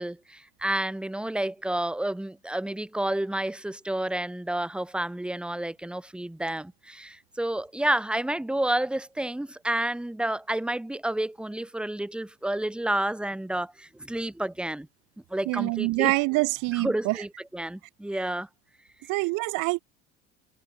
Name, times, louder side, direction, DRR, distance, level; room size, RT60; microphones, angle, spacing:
voice 1, 0.0-14.9 15.3-16.1 16.8-18.5, right 1 dB, 5° right, 0.8 m, -30 dB
voice 2, 15.5-17.2 19.1-19.8, right 26 dB, 65° right, 0.9 m, -25 dB
supercardioid pair, 90°, 34 cm